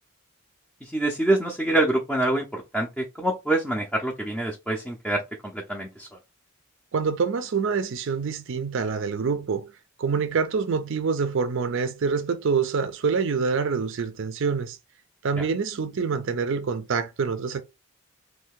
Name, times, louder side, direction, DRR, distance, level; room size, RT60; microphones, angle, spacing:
voice 1, 0.8-6.1 15.4-15.5, right 1 dB, 5° left, 0.5 m, -26 dB
voice 2, 6.9-9.7 10.0-14.8 15.2-17.6, right 5 dB, 60° right, 0.4 m, -26 dB
3.2 x 2.7 x 3.5 m
head